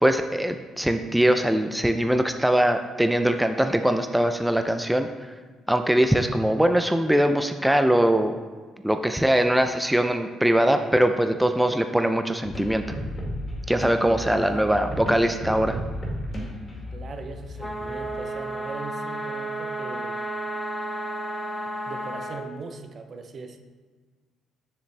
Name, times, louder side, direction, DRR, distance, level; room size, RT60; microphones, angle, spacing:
voice 1, 0.0-5.1 5.7-8.3 8.8-12.8 13.7-15.8, right 1 dB, 5° right, 7 dB, 0.5 m, -22 dB
sound 1, 12.4-18.1, left 1 dB, 35° left, 2.1 m, -34 dB
voice 2, 14.2-14.8 16.9-20.2 21.9-23.6, right 4 dB, 50° right, 7 dB, 0.7 m, -40 dB
sound 2, 17.6-22.4, right 1 dB, 15° left, 1.7 m, -32 dB
7.0 x 6.5 x 3.3 m, 1.5 s
supercardioid pair, 65°, 0 cm